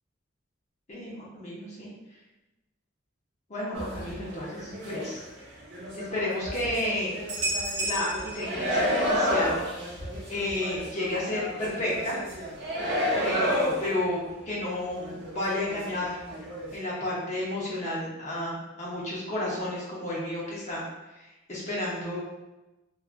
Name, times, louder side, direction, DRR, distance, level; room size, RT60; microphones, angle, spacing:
voice 1, 0.9-1.9 3.5-5.2 6.1-7.1 7.8-9.6 10.3-12.2 13.2-14.2 14.4-16.2 16.7-20.8 21.2-22.2, left 1 dB, 35° left, -6 dB, 0.7 m, -32 dB
sound 1, 3.7-5.3 5.7-14.3 14.6-14.7 14.9-16.7, equal, 55° right, 0.9 m, -30 dB
2.6 x 2.3 x 2.5 m, 1.1 s
head